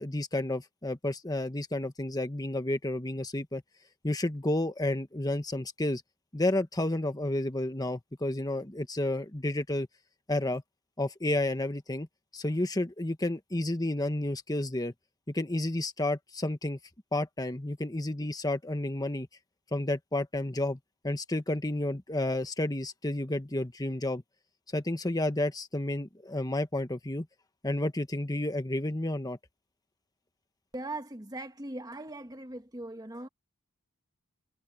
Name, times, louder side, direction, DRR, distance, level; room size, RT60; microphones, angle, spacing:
voice 1, 0.0-3.6 4.0-6.0 6.3-9.9 10.3-10.6 11.0-12.1 12.3-14.9 15.3-16.8 17.1-19.3 19.7-20.8 21.0-24.2 24.7-27.3 27.6-29.4, left 1 dB, 15° left, 1.3 m, -31 dB
voice 2, 30.7-33.3, right 2 dB, 20° right, 1.5 m, -40 dB
head